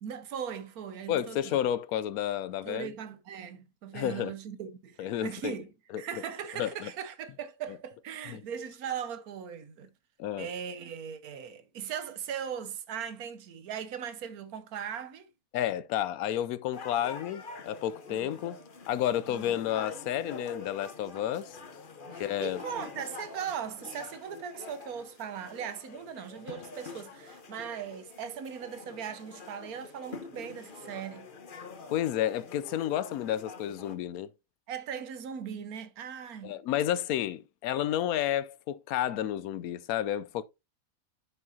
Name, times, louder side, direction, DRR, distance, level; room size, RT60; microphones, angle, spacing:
voice 1, 0.0-1.6 2.6-9.9 10.4-15.3 18.1-18.4 19.3-19.5 22.1-31.3 34.7-36.6, right 8 dB, 85° right, 1.4 m, -39 dB
voice 2, 1.1-2.9 3.9-4.3 5.0-5.5 5.9-6.0 6.6-6.9 8.3-8.4 10.2-10.5 15.5-18.6 18.9-21.6 22.2-22.6 31.9-34.3 36.4-40.4, left 11 dB, 80° left, 1.1 m, -31 dB
sound 1, 16.7-34.0, left 4 dB, 40° left, 1.0 m, -46 dB
11.0 x 5.5 x 2.7 m
omnidirectional pair, 1.5 m